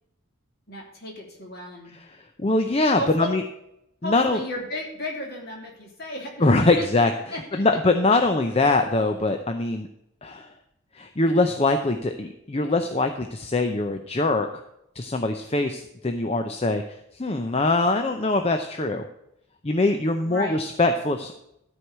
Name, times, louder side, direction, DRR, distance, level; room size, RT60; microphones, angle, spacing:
voice 1, 0.7-1.9 2.9-3.3 4.0-6.9 7.3-7.6 20.2-20.6, left 1 dB, 50° left, -1 dB, 3.0 m, -34 dB
voice 2, 1.9-3.4 4.0-4.4 6.4-9.9 10.2-10.5 10.9-14.5 15.0-16.8 17.2-19.1 19.6-21.3, left 2 dB, 30° left, 6 dB, 0.6 m, -23 dB
13.5 x 4.7 x 7.9 m, 0.80 s
head